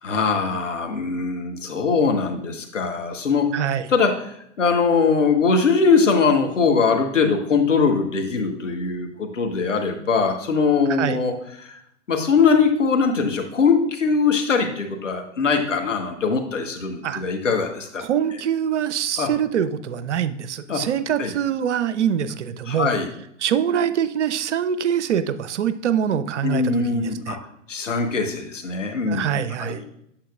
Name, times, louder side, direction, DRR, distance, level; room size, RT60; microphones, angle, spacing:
voice 1, 0.0-3.5 3.9-4.3 4.6-11.3 11.6-11.8 12.1-18.0 19.2-19.3 20.7-20.8 21.2-21.3 22.7-23.1 26.4-27.4 27.7-29.2 29.6-29.8, left 5 dB, 80° left, 4 dB, 1.3 m, -21 dB
voice 2, 3.5-3.9 11.0-11.2 17.0-17.2 18.0-22.9 23.4-27.4 29.1-29.8, right 9 dB, 70° right, 13 dB, 0.6 m, -24 dB
8.7 x 7.3 x 2.4 m, 0.74 s
figure-of-eight pair, 105°, 36 cm